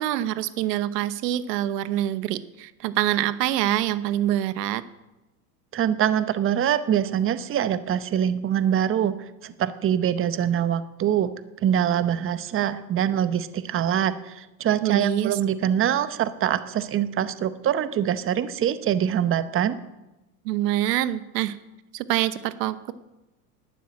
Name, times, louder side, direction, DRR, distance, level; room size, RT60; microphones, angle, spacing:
voice 1, 0.0-4.8 14.8-15.4 20.4-21.6 21.9-22.9, right 13 dB, 80° right, 14 dB, 1.0 m, -25 dB
voice 2, 5.7-11.3 11.6-19.8, right 10 dB, 25° right, 13 dB, 0.8 m, -24 dB
12.0 x 9.5 x 8.5 m, 1.0 s
supercardioid pair, 105°, 48 cm